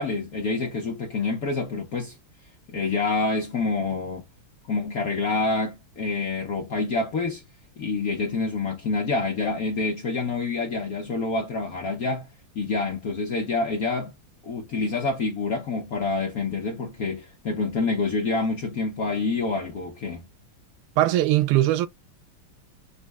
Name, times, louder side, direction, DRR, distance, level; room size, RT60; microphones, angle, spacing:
voice 1, 0.0-2.2 2.7-4.3 4.7-7.4 7.8-12.3 12.5-14.1 14.4-20.3, left 3 dB, 55° left, 1.1 m, -27 dB
voice 2, 21.0-21.9, right 14 dB, 85° right, 1.4 m, -20 dB
5.2 x 2.2 x 3.4 m
omnidirectional pair, 2.3 m